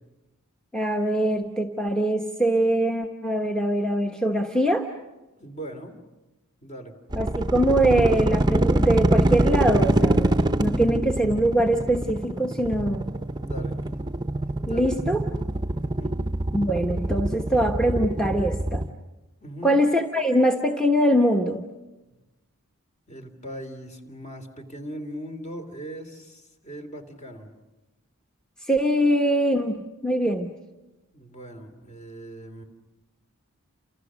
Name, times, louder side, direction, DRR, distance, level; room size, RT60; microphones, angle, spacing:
voice 1, 0.7-4.9 7.1-13.0 14.7-15.2 16.5-18.8 19.6-21.6 28.6-29.8 30.0-30.5, right 1 dB, 5° left, 3 dB, 1.2 m, -23 dB
voice 2, 5.4-6.0 6.6-7.0 13.4-13.8 14.6-14.9 15.8-16.2 19.4-19.8 22.0-22.2 23.1-27.5 31.1-32.6, right 1 dB, 35° left, 6 dB, 3.1 m, -39 dB
sound 1, 7.1-18.9, right 1 dB, 20° right, 0.8 m, -24 dB
30.0 x 28.0 x 6.4 m, 1.1 s
head